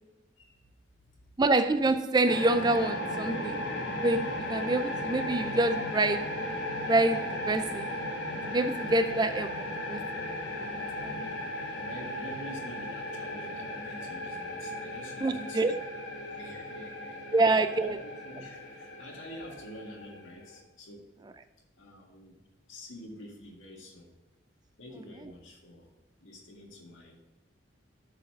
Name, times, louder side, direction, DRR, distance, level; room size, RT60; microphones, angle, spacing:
voice 1, 1.4-3.6 4.0-6.4 6.9-7.9 8.5-10.2 10.6-11.3 15.2-15.8 17.3-18.0, right 2 dB, 20° right, 0.4 m, -27 dB
sound 1, 2.2-20.6, left 1 dB, 65° left, 1.5 m, -36 dB
voice 2, 11.6-15.7 16.3-17.4 17.8-21.1 21.8-22.4 22.7-24.1 24.8-25.9 26.2-27.2, equal, 90° left, 1.7 m, -47 dB
8.0 x 4.1 x 6.5 m
head